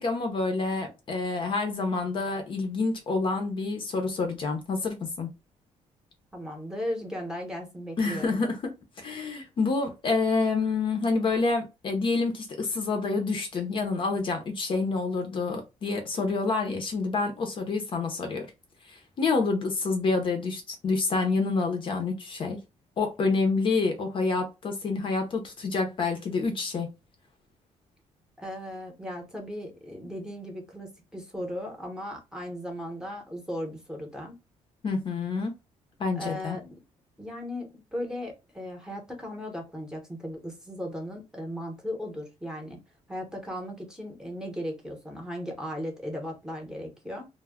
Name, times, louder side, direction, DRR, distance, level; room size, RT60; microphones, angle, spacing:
voice 1, 0.0-5.3 8.0-8.7 9.0-18.5 18.9-22.6 23.0-26.9 34.8-35.5 36.0-36.6, left 3 dB, 40° left, 0.6 m, -28 dB
voice 2, 6.3-8.4 28.4-34.4 36.2-36.6 37.2-42.8 43.1-47.3, equal, 5° right, 0.8 m, -37 dB
2.2 x 2.1 x 3.4 m
cardioid pair, 145°, 13 cm